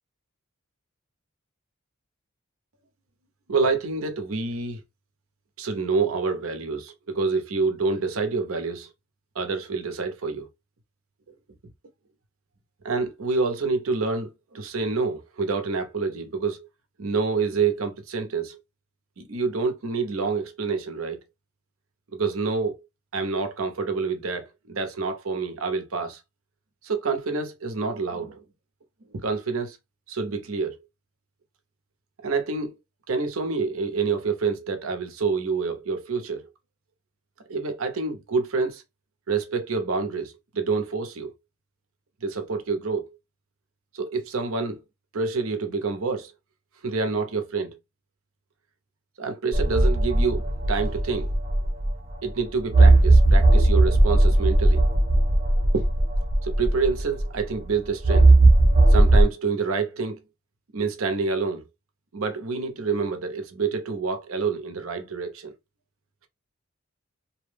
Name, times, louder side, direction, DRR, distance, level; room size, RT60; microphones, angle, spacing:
voice 1, 3.5-4.8 5.6-8.9 9.3-10.5 12.8-16.7 17.0-18.6 19.2-21.2 22.1-22.8 23.1-26.2 26.8-28.4 29.1-29.8 30.1-30.8 32.2-32.8 33.1-36.4 37.5-38.8 39.3-41.3 42.2-43.1 43.9-44.8 45.1-46.3 46.8-47.8 49.2-51.3 52.2-54.8 55.7-55.8 56.4-58.3 58.9-60.2 60.7-61.6 62.1-65.5, right 4 dB, 75° right, 0.7 m, -27 dB
sound 1, 49.5-52.1 52.7-57.4 58.0-59.2, right 2 dB, 30° right, 0.9 m, -17 dB
2.8 x 2.0 x 3.2 m
head